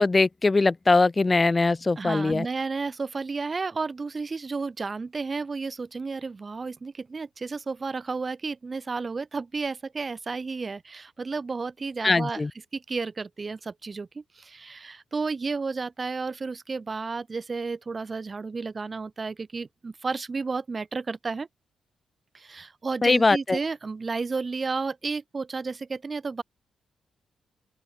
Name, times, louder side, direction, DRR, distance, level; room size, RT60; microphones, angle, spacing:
voice 1, 0.0-2.5 12.0-12.5 23.0-23.6, left 3 dB, 30° left, 1.0 m, -21 dB
voice 2, 2.0-12.4 12.7-21.5 22.3-26.4, right 4 dB, 40° right, 1.0 m, -32 dB
open air
hypercardioid pair, 40°, 0 cm